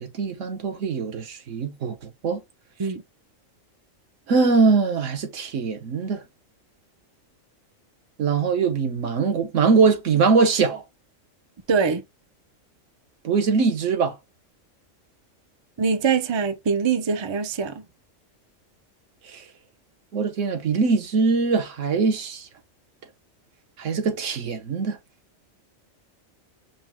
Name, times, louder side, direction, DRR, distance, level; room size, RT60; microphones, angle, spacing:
voice 1, 0.0-2.0 2.2-2.4 4.3-6.2 8.2-10.8 13.2-14.1 19.3-19.4 20.1-22.5 23.8-25.0, right 4 dB, 70° right, 1.2 m, -22 dB
voice 2, 11.7-12.0 15.8-17.8, right 5 dB, 40° right, 0.4 m, -23 dB
5.2 x 2.1 x 3.5 m
omnidirectional pair, 1.4 m